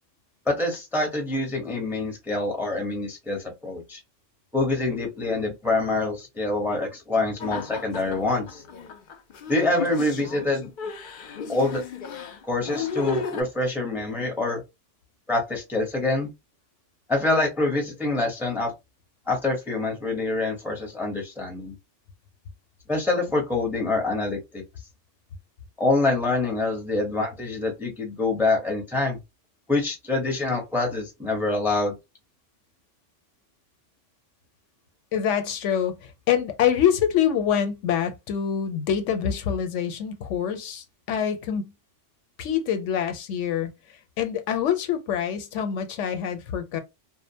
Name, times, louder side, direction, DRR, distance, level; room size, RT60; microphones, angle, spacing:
voice 1, 0.5-4.0 4.5-8.6 9.5-10.7 11.5-11.8 12.5-14.6 15.3-16.3 17.1-18.7 19.3-21.7 22.9-24.6 25.8-29.2 29.7-31.9, left 2 dB, ahead, 0.6 m, -25 dB
sound 1, 7.4-13.4, left 6 dB, 60° left, 0.6 m, -34 dB
voice 2, 35.1-41.7 42.4-43.7 44.2-46.8, left 9 dB, 85° left, 0.9 m, -25 dB
2.5 x 2.1 x 2.7 m
omnidirectional pair, 1.2 m